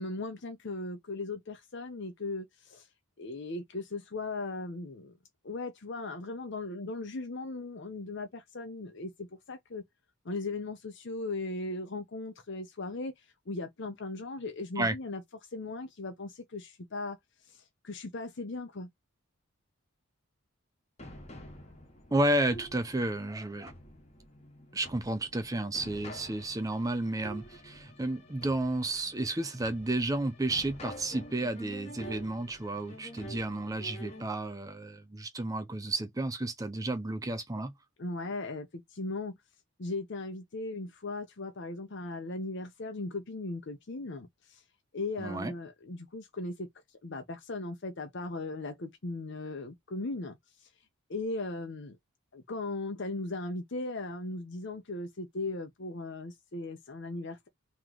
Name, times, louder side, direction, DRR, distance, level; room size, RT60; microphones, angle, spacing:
voice 1, 0.0-2.9 3.2-5.1 5.4-9.8 10.2-15.2 15.5-17.2 17.5-18.9 38.0-39.4 39.8-44.6 44.9-46.7 47.0-50.7 51.1-52.0 52.3-57.5, left 2 dB, 55° left, 0.7 m, -38 dB
sound 1, 21.0-34.2, equal, 30° left, 1.1 m, -48 dB
voice 2, 22.1-23.7 24.7-37.7 45.2-45.5, right 1 dB, 15° right, 0.5 m, -32 dB
3.1 x 3.0 x 3.8 m
head